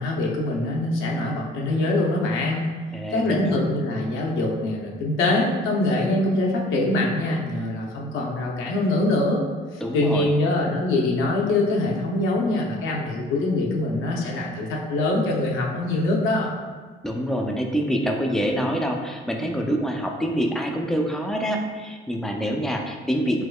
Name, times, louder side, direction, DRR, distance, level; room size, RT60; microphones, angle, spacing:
voice 1, 0.0-2.7 3.1-9.4 9.9-16.5, left 2 dB, 85° left, -2 dB, 0.6 m, -23 dB
voice 2, 2.9-3.6 9.8-10.3 17.0-23.5, equal, ahead, 2 dB, 0.4 m, -26 dB
3.5 x 3.1 x 2.2 m, 1.4 s
cardioid pair, 90°, 20 cm